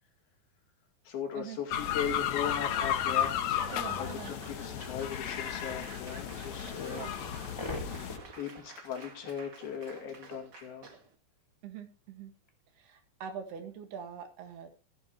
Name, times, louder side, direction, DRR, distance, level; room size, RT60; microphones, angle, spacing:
voice 1, 1.1-3.3 4.0-7.1 8.4-10.9, left 7 dB, 65° left, 2 dB, 4.2 m, -38 dB
sound 1, 1.7-8.2, left 10 dB, 80° left, 1.6 m, -33 dB
Laughter / Applause / Crowd, 3.4-11.1, right 4 dB, 50° right, 1.2 m, -49 dB
voice 2, 3.7-4.3 6.9-7.1 11.6-12.3 12.8-14.8, right 7 dB, 70° right, 6 dB, 3.7 m, -43 dB
sound 2, 5.2-5.3 5.6-7.2 7.6-9.2 9.4-9.5 10.3-10.4 12.5-12.6, left 1 dB, 10° left, 1.2 m, -44 dB
15.5 x 11.0 x 3.1 m, 0.33 s
omnidirectional pair, 4.8 m